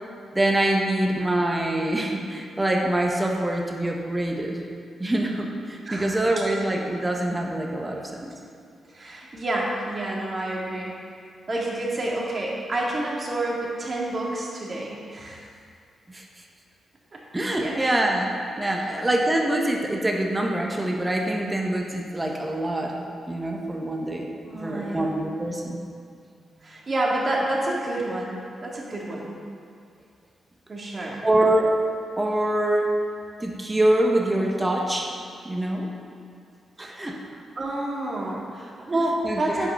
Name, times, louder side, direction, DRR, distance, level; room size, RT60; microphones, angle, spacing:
voice 1, 0.3-4.6 5.0-8.3 16.1-16.2 17.3-24.3 24.5-25.8 31.2-31.8 32.2-32.9 33.4-35.1 35.4-35.9 36.8-37.2 39.0-39.4, right 1 dB, 20° right, 0 dB, 1.3 m, -25 dB
voice 2, 5.9-6.2 8.9-10.9 11.5-15.4 17.6-17.7 18.8-18.9 24.4-25.1 26.6-29.4 30.7-31.2 36.8-37.1 37.6-39.7, right 1 dB, 45° right, -3 dB, 2.2 m, -29 dB
9.0 x 4.8 x 5.7 m, 2.3 s
supercardioid pair, 50°, 0 cm